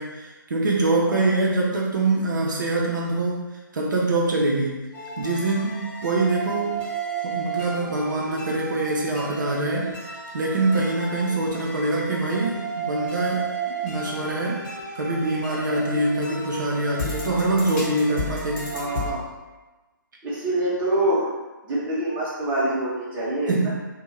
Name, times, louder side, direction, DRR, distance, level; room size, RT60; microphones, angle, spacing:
voice 1, 0.0-3.4 3.7-4.9 5.2-6.8 7.2-14.6 15.0-18.7 23.5-23.7, right 2 dB, 60° right, -3 dB, 0.5 m, -24 dB
sound 1, 4.9-19.1, right 3 dB, 35° left, 1.0 m, -33 dB
voice 2, 18.7-19.2 20.2-21.3 21.7-23.7, right 1 dB, 15° right, -8 dB, 0.8 m, -25 dB
2.5 x 2.1 x 3.2 m, 1.2 s
figure-of-eight pair, 140°, 11 cm